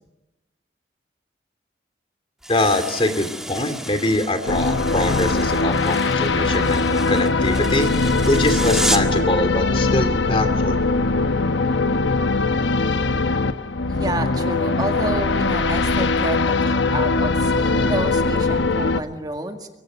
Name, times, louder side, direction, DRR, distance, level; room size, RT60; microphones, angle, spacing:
sound 1, 2.4-9.2, right 1 dB, 5° right, 1.6 m, -31 dB
voice 1, 2.5-10.8, left 1 dB, 30° left, 9 dB, 2.6 m, -23 dB
sound 2, 4.5-19.0, left 3 dB, 80° left, 1.1 m, -21 dB
voice 2, 13.9-19.7, right 1 dB, 20° right, 5 dB, 1.9 m, -29 dB
24.5 x 23.5 x 9.4 m, 0.98 s
head